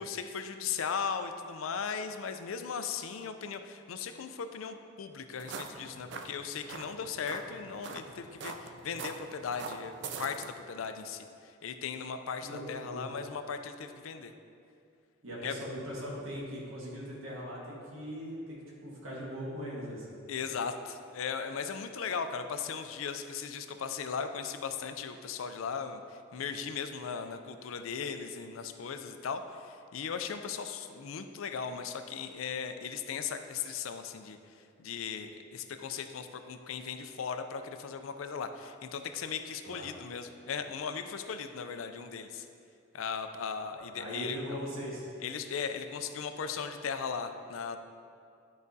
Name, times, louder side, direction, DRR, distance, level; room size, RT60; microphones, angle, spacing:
voice 1, 0.0-14.3 15.4-15.5 20.3-34.4 34.8-42.5 42.9-44.6 45.2-47.8, left 6 dB, 80° left, 8 dB, 0.4 m, -37 dB
sound 1, 5.4-10.5, right 4 dB, 60° right, 0.4 m, -43 dB
voice 2, 12.4-13.1 15.2-20.2 39.6-39.9 43.7-45.1, equal, 80° right, -5 dB, 1.6 m, -40 dB
10.5 x 4.9 x 2.7 m, 2.4 s
head